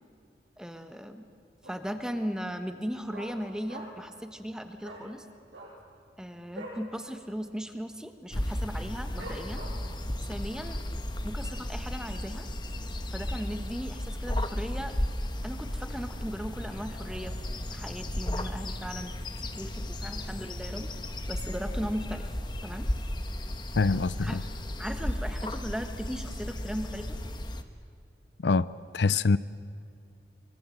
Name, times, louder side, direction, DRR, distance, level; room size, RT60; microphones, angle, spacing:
voice 1, 0.6-1.2 1.6-5.3 6.2-9.6 10.2-10.8 11.2-12.5 13.1-14.9 15.4-17.4 17.7-19.3 19.6-20.9 21.3-22.9 24.2-24.4 24.8-27.2, equal, 5° right, 7 dB, 1.3 m, -37 dB
Dog, 1.6-2.1 2.3-2.4 2.7-4.1 4.4-4.5 4.8-5.1 5.4-6.9 7.2-7.4 7.6-8.0 8.5-8.6 9.2-10.0 10.4-10.5, right 1 dB, 90° right, 7.9 m, -44 dB
sound 1, 8.3-27.6, left 1 dB, 25° left, 1.1 m, -34 dB
voice 2, 23.8-24.4 28.4-28.7 28.9-29.4, left 4 dB, 75° left, 17 dB, 0.5 m, -24 dB
25.0 x 23.0 x 7.7 m, 2.4 s
head